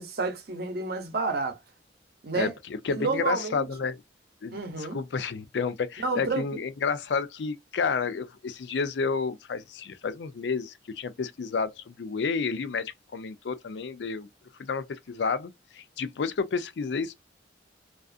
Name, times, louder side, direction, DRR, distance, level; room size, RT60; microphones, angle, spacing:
voice 1, 0.0-1.6 2.2-2.5 2.9-3.7 4.5-5.0 6.0-6.4, right 3 dB, 60° right, 0.7 m, -30 dB
voice 2, 2.3-4.0 4.4-14.3 14.6-17.1, left 5 dB, 70° left, 0.4 m, -31 dB
2.4 x 2.4 x 2.3 m
head